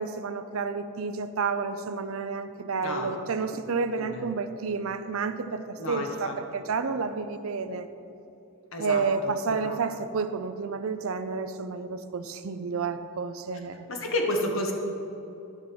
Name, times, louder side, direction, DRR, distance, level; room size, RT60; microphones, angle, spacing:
voice 1, 0.0-7.9 8.8-13.8, right 4 dB, 70° right, 10 dB, 0.5 m, -30 dB
voice 2, 2.8-3.1 3.5-3.6 4.0-4.3 5.8-6.4 8.7-9.8 13.9-14.7, left 1 dB, 65° left, 2 dB, 1.1 m, -31 dB
12.5 x 5.6 x 4.4 m, 2.9 s
head